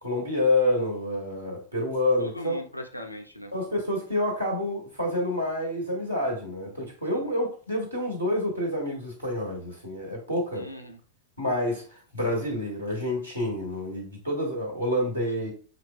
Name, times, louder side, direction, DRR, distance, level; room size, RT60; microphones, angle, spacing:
voice 1, 0.0-2.6 3.5-10.7 11.4-15.5, left 1 dB, 85° right, -1 dB, 1.3 m, -28 dB
voice 2, 2.2-3.5 7.1-7.3 10.5-11.0, left 1 dB, 90° left, 4 dB, 0.5 m, -39 dB
5.8 x 3.0 x 2.2 m, 0.40 s
figure-of-eight pair, 90°, 0 cm